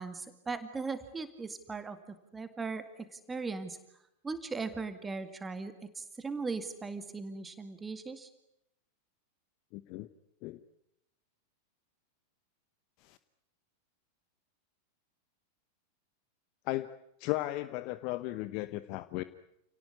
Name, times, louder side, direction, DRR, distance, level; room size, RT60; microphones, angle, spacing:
voice 1, 0.0-3.8 4.2-8.3, right 4 dB, 15° right, 9 dB, 2.1 m, -39 dB
voice 2, 9.7-10.1 10.4-10.6 13.0-13.2 16.7-16.9 17.2-19.2, left 18 dB, 45° left, 14 dB, 1.0 m, -35 dB
29.0 x 18.5 x 9.7 m, 0.81 s
figure-of-eight pair, 90°, 0 cm